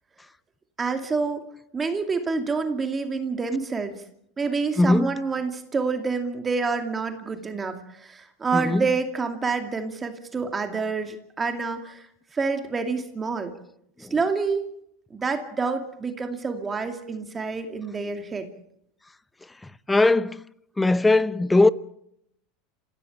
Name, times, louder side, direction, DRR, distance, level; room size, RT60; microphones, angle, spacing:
voice 1, 0.8-1.5 1.7-4.0 4.4-12.1 12.3-13.5 14.1-14.7 15.1-18.5, right 4 dB, 20° right, 2.4 m, -27 dB
voice 2, 4.8-5.1 8.5-8.8 19.9-20.4 20.8-21.7, left 2 dB, 10° left, 0.8 m, -19 dB
27.5 x 16.0 x 7.2 m
supercardioid pair, 125°, 0 cm